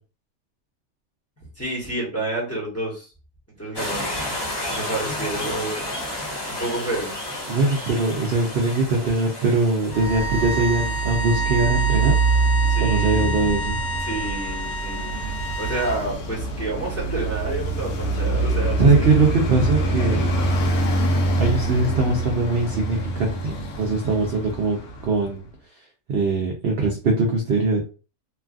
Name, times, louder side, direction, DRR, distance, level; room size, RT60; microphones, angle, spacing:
voice 1, 1.6-3.1 3.6-4.2 4.7-5.8 6.5-7.1 12.7-13.2 14.0-19.2, right 2 dB, 10° left, -6 dB, 1.0 m, -29 dB
sound 1, 3.8-12.1, left 1 dB, 25° left, 0.5 m, -32 dB
voice 2, 7.5-12.1 12.8-13.8 18.8-20.2 21.4-24.8 25.0-25.4 26.1-27.9, right 3 dB, 65° right, 1 dB, 0.6 m, -21 dB
Traffic noise roadway noise, 9.9-25.4, right 3 dB, 85° left, 1.2 m, -25 dB
sound 2, 9.9-16.0, equal, 60° left, 1.1 m, -29 dB
3.1 x 2.4 x 2.4 m, 0.35 s
omnidirectional pair, 1.5 m